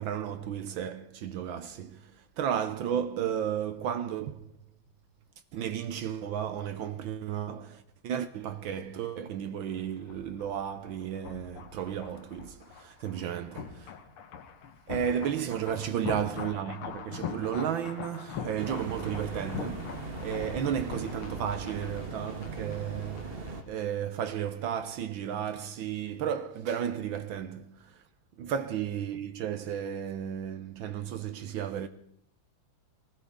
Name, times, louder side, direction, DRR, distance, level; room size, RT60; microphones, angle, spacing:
voice 1, 0.0-4.5 5.5-13.9 14.9-28.0 28.4-31.9, right 9 dB, 70° right, 1.5 m, -33 dB
sound 1, 9.7-23.5 23.8-23.9, left 7 dB, 90° left, 2.1 m, -42 dB
sound 2, 18.6-23.6, right 3 dB, 30° right, 1.3 m, -39 dB
20.0 x 17.0 x 3.6 m
omnidirectional pair, 2.3 m